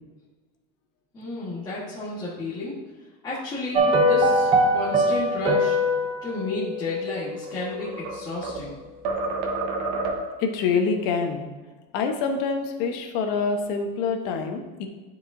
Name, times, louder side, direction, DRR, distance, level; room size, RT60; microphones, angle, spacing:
voice 1, 1.1-2.8 3.2-5.8 6.2-8.8, left 2 dB, 20° left, -9 dB, 1.5 m, -32 dB
sound 1, 3.7-8.0 8.3-8.4, equal, 25° right, 0.8 m, -23 dB
sound 2, 7.3-8.7 9.1-10.5, right 3 dB, 60° right, 1.1 m, -29 dB
voice 2, 10.4-11.5 11.9-14.9, left 5 dB, 55° left, 4 dB, 1.0 m, -26 dB
10.5 x 4.9 x 2.7 m, 1.3 s
supercardioid pair, 155°, 21 cm